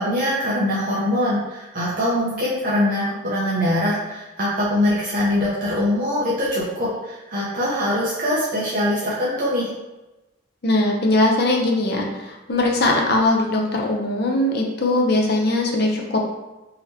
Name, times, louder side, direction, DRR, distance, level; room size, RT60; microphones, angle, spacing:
voice 1, 0.0-9.7, left 1 dB, 40° right, -8 dB, 0.7 m, -23 dB
voice 2, 10.6-16.2, left 2 dB, 50° left, 0 dB, 0.6 m, -20 dB
4.0 x 3.0 x 2.7 m, 1.0 s
head